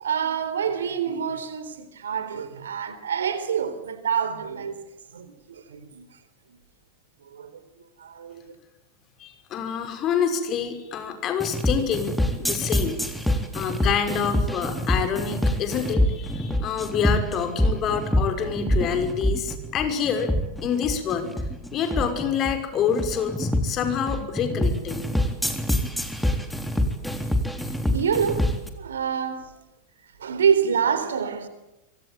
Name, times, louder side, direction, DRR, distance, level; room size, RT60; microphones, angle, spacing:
voice 1, 0.0-4.8 5.1-6.0 7.2-7.5 8.0-8.5 27.9-28.5 28.7-29.5 30.2-31.5, right 7 dB, 65° right, 3.9 m, -26 dB
voice 2, 9.2-13.0 13.5-20.3 20.6-21.3 21.7-25.1, left 7 dB, 30° left, 5.6 m, -27 dB
sound 1, 11.4-28.7, left 1 dB, 5° left, 3.7 m, -25 dB
25.5 x 24.0 x 9.1 m
figure-of-eight pair, 90°, 0 cm